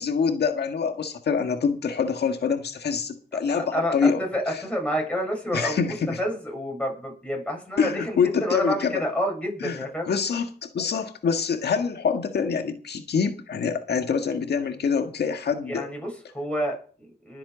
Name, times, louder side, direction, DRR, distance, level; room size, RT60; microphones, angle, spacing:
voice 1, 0.0-4.2 5.5-5.9 7.8-9.0 9.6-9.8 10.1-10.5 10.7-15.8, left 6 dB, 70° left, 1.7 m, -25 dB
voice 2, 3.3-10.1 15.7-17.4, equal, 5° left, 7.6 m, -29 dB
20.5 x 7.8 x 5.2 m
wide cardioid pair, 120°, 17 cm